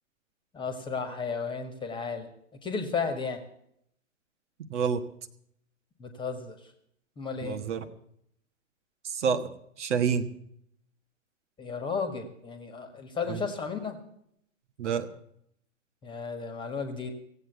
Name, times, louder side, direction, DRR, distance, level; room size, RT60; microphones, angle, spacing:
voice 1, 0.5-2.3 2.6-3.4 6.0-6.6 7.2-7.6 11.6-14.0 16.0-17.1, left 5 dB, 10° left, 7 dB, 1.8 m, -33 dB
voice 2, 4.7-5.0 7.4-7.8 9.0-9.5 9.8-10.3 13.3-13.4 14.8-15.1, right 6 dB, 60° right, 8 dB, 1.5 m, -28 dB
16.5 x 8.3 x 8.1 m, 0.72 s
hypercardioid pair, 120°, 39 cm